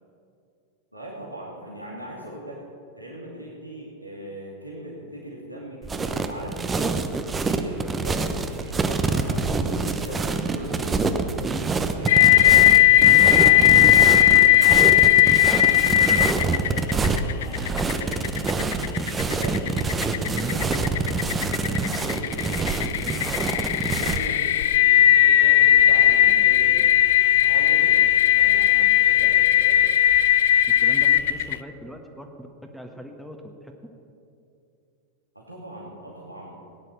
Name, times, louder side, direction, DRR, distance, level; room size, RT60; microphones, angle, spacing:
voice 1, 0.9-2.6 3.0-6.9 7.5-18.5 19.2-19.6 20.0-23.6 24.0-26.8 27.2-28.0 28.3-29.8 35.3-36.6, right 1 dB, 90° right, -4 dB, 2.4 m, -39 dB
sound 1, 5.8-24.3, right 4 dB, 15° right, 1.0 m, -26 dB
sound 2, 7.5-14.5, right 5 dB, 30° right, 1.7 m, -42 dB
sound 3, 12.1-31.6, left 13 dB, 55° left, 0.4 m, -17 dB
voice 2, 20.4-20.7 30.7-32.5 32.7-33.7, equal, ahead, 3 dB, 1.4 m, -41 dB
18.0 x 9.9 x 6.3 m, 2.6 s
figure-of-eight pair, 90°, 0 cm